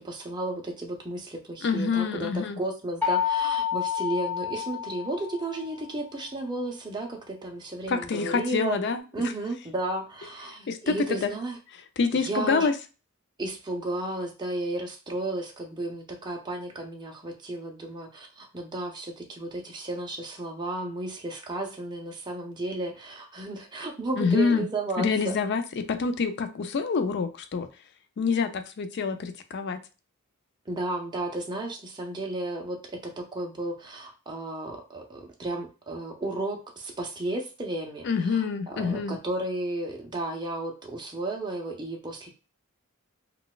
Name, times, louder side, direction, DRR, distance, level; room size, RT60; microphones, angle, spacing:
voice 1, 0.0-8.8 9.1-11.6 12.1-12.7 13.4-25.4 30.7-42.3, right 2 dB, 20° right, 0.6 m, -33 dB
voice 2, 1.6-2.6 7.9-9.0 10.7-11.3 12.0-12.7 24.2-24.7 25.0-27.7 28.2-29.8 38.0-39.2, left 5 dB, 50° left, 0.4 m, -26 dB
sound 1, 3.0-5.8, left 8 dB, 5° left, 0.9 m, -29 dB
3.8 x 2.3 x 2.3 m
head